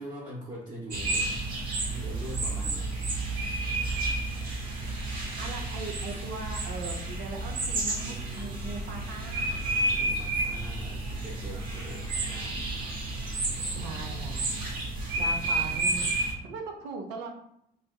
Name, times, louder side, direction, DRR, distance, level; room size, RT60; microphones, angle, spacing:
voice 1, 0.0-1.4 1.9-3.6 9.7-12.7, equal, 25° right, -5 dB, 0.6 m, -43 dB
sound 1, 0.9-16.3, right 2 dB, 60° right, 0.9 m, -31 dB
voice 2, 5.4-9.6 13.5-14.7 15.2-16.1 16.4-17.3, right 3 dB, 80° right, 3 dB, 0.6 m, -40 dB
3.3 x 2.7 x 2.3 m, 0.74 s
cardioid pair, 110°, 17 cm